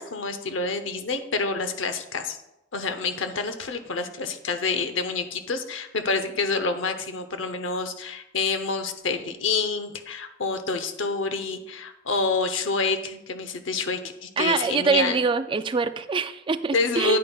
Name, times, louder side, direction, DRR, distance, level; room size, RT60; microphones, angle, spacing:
voice 1, 0.0-2.4 2.7-15.2 16.7-17.2, left 4 dB, 80° left, 8 dB, 0.8 m, -28 dB
voice 2, 14.4-17.2, right 4 dB, 25° right, 10 dB, 0.3 m, -24 dB
9.7 x 9.0 x 2.3 m, 0.89 s
head